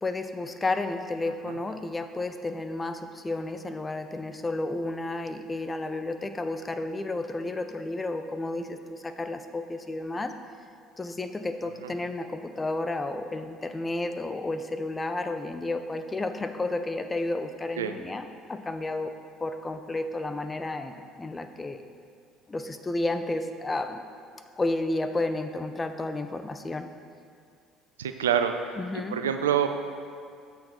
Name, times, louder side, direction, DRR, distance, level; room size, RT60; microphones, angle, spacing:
voice 1, 0.0-10.3 11.0-19.1 19.4-21.8 22.5-24.0 24.6-26.9 28.8-29.2, left 2 dB, 20° left, 8 dB, 0.5 m, -32 dB
voice 2, 28.0-28.7 29.1-29.7, right 9 dB, 85° right, 7 dB, 0.3 m, -26 dB
7.4 x 4.4 x 4.3 m, 2.3 s
hypercardioid pair, 60°, 0 cm